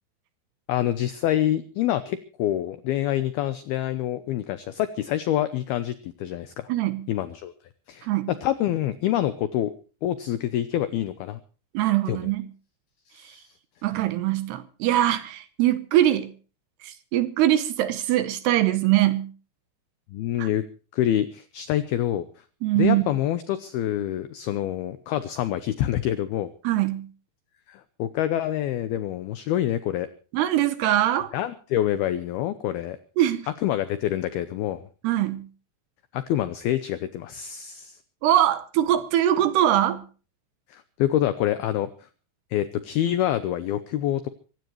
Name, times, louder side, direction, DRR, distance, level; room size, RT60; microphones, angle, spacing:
voice 1, 0.7-6.7 7.1-7.5 7.9-9.7 10.0-11.4 12.1-12.2 13.1-13.5 20.1-20.6 20.9-22.3 22.8-26.5 27.7-30.1 31.3-33.0 33.6-34.8 36.1-38.0 40.7-41.9 42.5-44.3, left 12 dB, 90° left, 2.1 m, -26 dB
voice 2, 6.7-7.1 8.0-8.3 11.7-12.5 13.2-13.4 13.8-16.3 16.8-19.3 20.4-20.5 22.6-23.0 26.6-27.1 30.3-31.3 33.2-33.5 35.0-35.5 38.2-40.0, right 13 dB, 75° right, 2.6 m, -22 dB
24.0 x 16.5 x 3.1 m
omnidirectional pair, 5.6 m